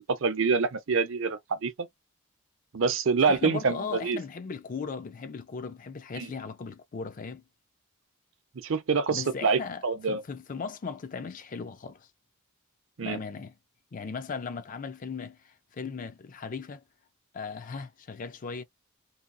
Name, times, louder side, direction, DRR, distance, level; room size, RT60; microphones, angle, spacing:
voice 1, 0.1-1.9 2.7-4.2 6.2-6.3 8.6-10.2 13.0-13.2, right 5 dB, 60° right, 0.5 m, -26 dB
voice 2, 3.3-7.4 9.1-12.1 13.0-13.5 13.9-16.8 17.3-18.6, left 5 dB, 35° left, 0.4 m, -37 dB
2.7 x 2.2 x 2.5 m
head